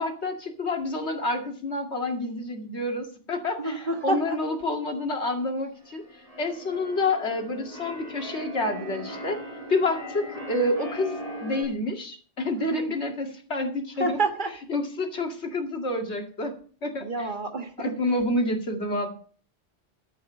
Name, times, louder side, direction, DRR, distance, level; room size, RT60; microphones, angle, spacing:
voice 1, 0.0-6.0 6.4-9.4 9.7-11.2 11.4-14.2 14.7-16.6 16.8-17.3 17.8-19.1, left 2 dB, 90° left, 3 dB, 2.4 m, -28 dB
voice 2, 3.6-4.6 12.6-12.8 14.0-14.5 17.0-18.0, right 2 dB, 50° right, 6 dB, 1.6 m, -28 dB
Keyboard (musical), 5.7-11.6, right 1 dB, 35° right, 7.6 m, -39 dB
13.0 x 8.2 x 5.5 m, 0.43 s
omnidirectional pair, 1.1 m